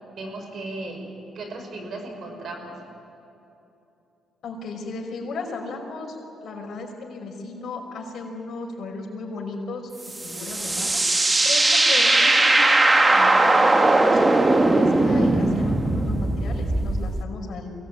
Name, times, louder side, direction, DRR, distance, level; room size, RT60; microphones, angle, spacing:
voice 1, 0.2-1.0 1.3-2.8, right 2 dB, 60° right, 3 dB, 5.8 m, -35 dB
voice 2, 4.4-6.2 6.4-9.9 10.2-11.0 11.4-14.3 14.7-17.7, left 3 dB, 60° left, 1 dB, 5.4 m, -35 dB
sound 1, 10.1-17.2, right 2 dB, 20° right, 1.4 m, -19 dB
23.5 x 18.5 x 9.3 m, 2.9 s
cardioid pair, 90°, 0 cm